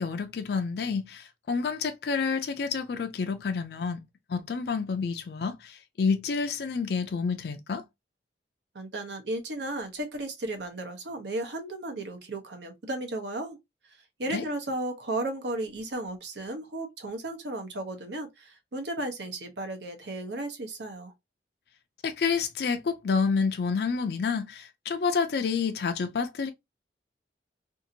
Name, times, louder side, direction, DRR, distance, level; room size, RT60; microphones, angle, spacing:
voice 1, 0.0-4.0 4.3-7.8 14.3-14.5 22.0-26.5, left 5 dB, 60° left, 0.4 m, -29 dB
voice 2, 8.7-13.6 14.2-21.1, right 2 dB, 70° right, 0.8 m, -34 dB
2.7 x 2.5 x 2.7 m
head